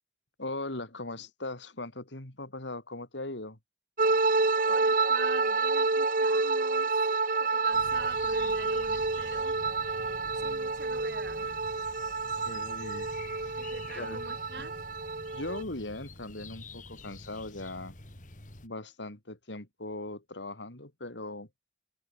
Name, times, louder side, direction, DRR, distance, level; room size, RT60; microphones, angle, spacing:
voice 1, 0.4-3.6 12.5-13.1 13.4-13.6 13.9-14.3 14.6-14.7 15.3-18.0 18.6-21.5, left 2 dB, 85° left, 3.9 m, -39 dB
sound 1, 4.0-15.6, right 3 dB, 50° right, 1.3 m, -28 dB
voice 2, 4.6-9.6 10.4-11.7 13.6-14.7, right 3 dB, 70° right, 6.9 m, -45 dB
sound 2, 7.7-18.7, left 2 dB, 45° left, 2.7 m, -48 dB
head